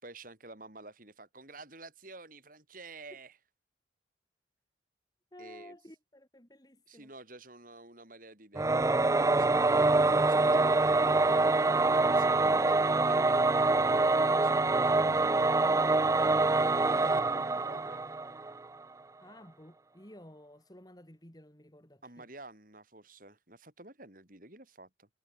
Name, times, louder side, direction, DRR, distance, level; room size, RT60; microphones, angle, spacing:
voice 1, 0.0-3.3 5.4-5.8 6.9-11.6 12.1-15.5 16.2-18.0 22.0-25.1, right 2 dB, 45° right, 5.3 m, -50 dB
voice 2, 5.3-7.1 19.2-22.3, left 1 dB, 20° left, 2.7 m, -53 dB
Singing / Musical instrument, 8.6-18.6, right 3 dB, 15° right, 0.3 m, -25 dB
head